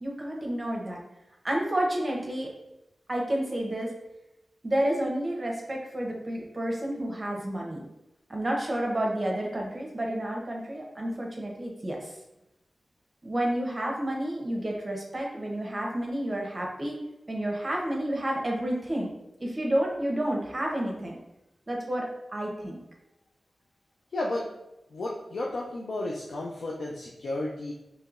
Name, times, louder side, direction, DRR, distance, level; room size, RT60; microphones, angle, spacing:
voice 1, 0.0-1.0 1.4-2.5 3.1-3.9 4.6-7.8 8.3-12.1 13.2-17.0 17.3-19.1 19.4-21.1 21.7-22.8, right 1 dB, 30° right, -1 dB, 0.9 m, -30 dB
voice 2, 24.1-24.5 24.9-27.7, left 2 dB, 85° left, -3 dB, 0.5 m, -33 dB
4.6 x 3.1 x 2.5 m, 0.92 s
wide cardioid pair, 75°, 0 cm